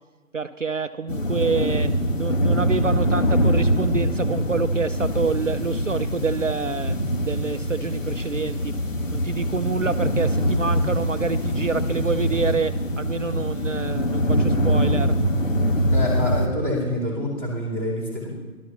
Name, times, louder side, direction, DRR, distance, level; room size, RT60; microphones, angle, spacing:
voice 1, 0.3-8.8 9.1-15.1, right 4 dB, 55° right, 11 dB, 0.8 m, -27 dB
sound 1, 1.1-16.5, equal, 55° left, 2.7 m, -23 dB
voice 2, 15.9-18.3, left 1 dB, 10° left, -5 dB, 2.6 m, -27 dB
17.0 x 12.5 x 6.0 m, 1.3 s
figure-of-eight pair, 165°, 45 cm